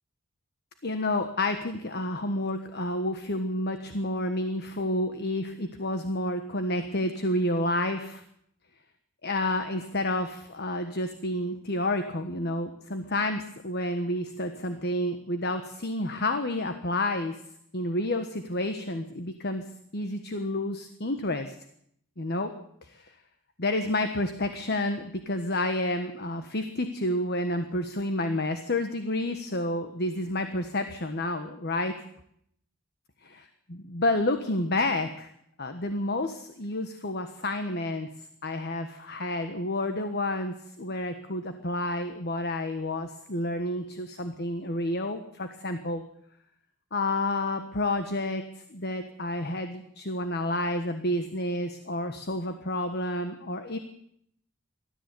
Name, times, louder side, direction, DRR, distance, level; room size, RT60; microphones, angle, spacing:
voice 1, 0.8-8.2 9.2-17.4 17.7-19.6 19.9-21.5 22.2-22.5 22.8-23.1 23.6-31.9 33.7-35.3 35.6-38.1 38.4-46.0 46.9-53.8, left 1 dB, 50° left, 8 dB, 1.4 m, -30 dB
20.0 x 13.5 x 9.7 m, 0.72 s
head